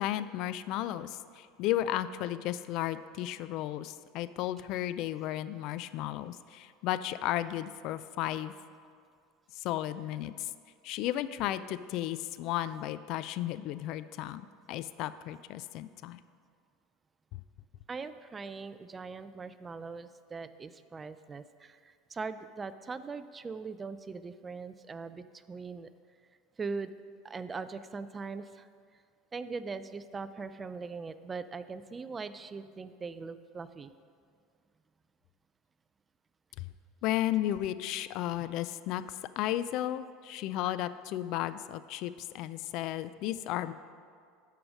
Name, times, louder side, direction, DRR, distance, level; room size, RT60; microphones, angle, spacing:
voice 1, 0.0-8.5 9.5-10.5 10.8-16.2 17.3-17.4 36.6-36.7 37.0-43.7, left 13 dB, 55° left, 14 dB, 0.3 m, -34 dB
voice 2, 17.9-25.9 26.6-26.9 27.2-28.7 29.3-33.9, right 4 dB, 20° right, 13 dB, 0.3 m, -41 dB
11.5 x 4.8 x 6.2 m, 2.2 s
supercardioid pair, 130°, 0 cm